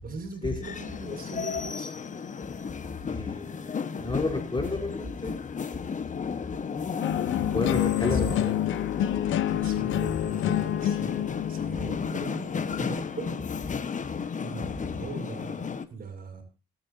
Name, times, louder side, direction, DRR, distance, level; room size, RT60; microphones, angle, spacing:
voice 1, 0.0-1.9 7.7-8.4 9.5-13.4 14.4-16.4, right 4 dB, 45° right, 6 dB, 6.4 m, -40 dB
sound 1, 0.6-15.9, left 6 dB, 40° left, 1.4 m, -34 dB
voice 2, 3.1-3.7 4.0-5.3 7.3-8.6, left 3 dB, 25° left, 3 dB, 4.2 m, -30 dB
sound 2, 7.0-13.0, left 12 dB, 80° left, 0.8 m, -28 dB
26.5 x 9.4 x 2.8 m, 0.32 s
cardioid pair, 90°, 20 cm